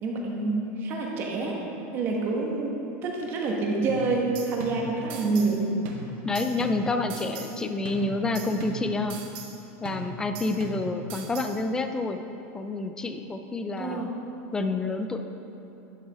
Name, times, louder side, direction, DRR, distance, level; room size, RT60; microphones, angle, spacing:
voice 1, 0.0-1.6 1.9-5.7 13.8-14.1, right 3 dB, 30° right, -1 dB, 1.2 m, -27 dB
sound 1, 3.9-5.6 5.9-7.6 7.9-9.6 9.9-11.6, right 2 dB, 60° right, 1.0 m, -39 dB
voice 2, 6.2-9.2 9.8-12.2 12.5-14.1 14.5-15.2, left 2 dB, 10° left, 7 dB, 0.3 m, -28 dB
11.0 x 6.7 x 3.4 m, 3.0 s
supercardioid pair, 165°, 7 cm